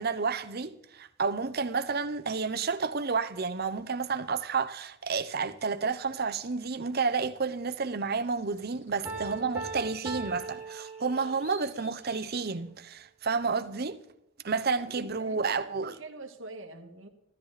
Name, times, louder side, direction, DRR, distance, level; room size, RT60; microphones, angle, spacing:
voice 1, 0.0-14.0 14.4-16.0, right 4 dB, 50° right, 0.8 m, -30 dB
sound 1, 3.5-3.6 6.1-6.2 7.8-12.4, right 1 dB, 35° left, 4.1 m, -55 dB
Piano, 9.0-11.6, right 3 dB, 10° right, 2.0 m, -39 dB
voice 2, 14.8-17.1, right 2 dB, 75° right, 1.8 m, -45 dB
15.5 x 13.0 x 4.1 m
head